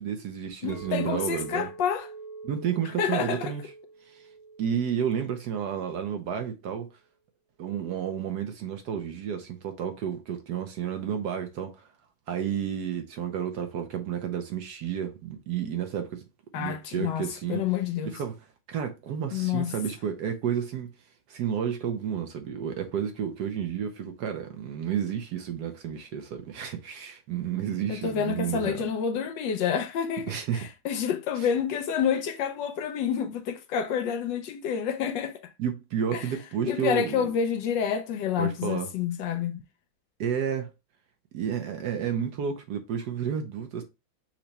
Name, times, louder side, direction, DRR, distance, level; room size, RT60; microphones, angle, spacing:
voice 1, 0.0-1.7 2.4-3.6 4.1-4.2 4.6-6.9 7.6-11.9 12.3-16.2 16.6-17.6 18.1-18.4 18.7-20.9 21.3-28.9 30.3-30.7 31.4-31.5 35.6-37.3 38.4-38.9 40.2-40.7 41.3-43.8, right 8 dB, 65° right, 1.1 m, -31 dB
voice 2, 0.6-2.1 3.0-3.5 16.5-18.1 19.3-19.7 27.9-35.4 36.1-36.3 36.7-39.6, left 8 dB, 75° left, 1.2 m, -28 dB
Chink clink, 0.7-5.9, right 4 dB, 5° left, 0.5 m, -44 dB
5.8 x 2.2 x 4.0 m
omnidirectional pair, 2.1 m